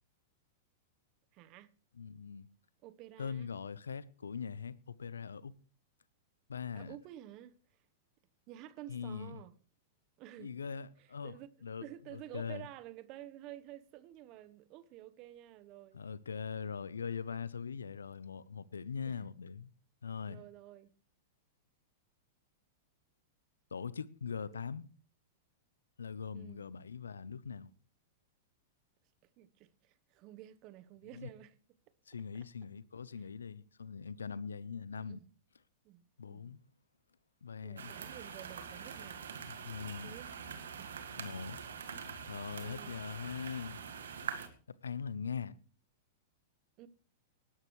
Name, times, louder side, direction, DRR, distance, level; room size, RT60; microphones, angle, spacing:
voice 1, 1.3-1.7 2.8-3.5 6.7-7.5 8.5-9.5 10.2-10.5 11.0-11.5 11.8-16.0 19.1-19.3 20.3-20.9 24.5-24.6 26.3-26.6 29.4-31.5 35.1-35.2 35.8-36.6 37.6-39.4 40.0-40.3 40.7-41.2 42.6-43.1 46.8-46.9, right 13 dB, 45° right, 1.0 m, -51 dB
voice 2, 1.9-2.5 3.2-5.5 6.5-7.0 8.9-9.4 10.4-12.7 15.9-19.7 20.0-20.4 23.7-24.9 26.0-27.7 31.1-31.3 32.1-35.2 36.2-36.6 37.4-37.9 39.5-40.2 41.2-41.6 42.3-43.8 44.7-45.6, left 6 dB, 85° left, 0.7 m, -42 dB
sound 1, 37.8-44.5, right 6 dB, 80° right, 1.9 m, -44 dB
19.5 x 11.0 x 3.2 m
hypercardioid pair, 105°, 0 cm